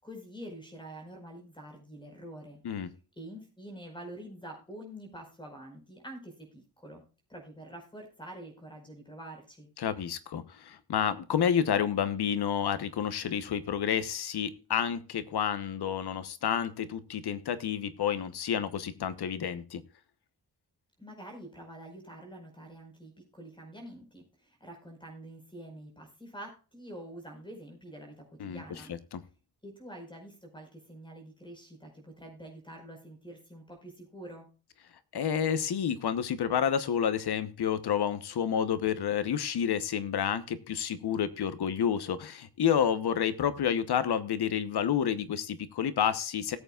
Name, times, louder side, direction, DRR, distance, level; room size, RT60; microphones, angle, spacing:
voice 1, 0.0-2.6 3.1-7.0 7.3-9.7 21.0-28.9 29.6-34.5, right 1 dB, 10° left, 3 dB, 4.9 m, -46 dB
voice 2, 9.8-19.8 28.4-28.6 28.9-29.2 35.1-46.6, left 8 dB, 75° left, 13 dB, 1.1 m, -29 dB
19.0 x 8.1 x 2.4 m, 0.34 s
wide cardioid pair, 140°, 39 cm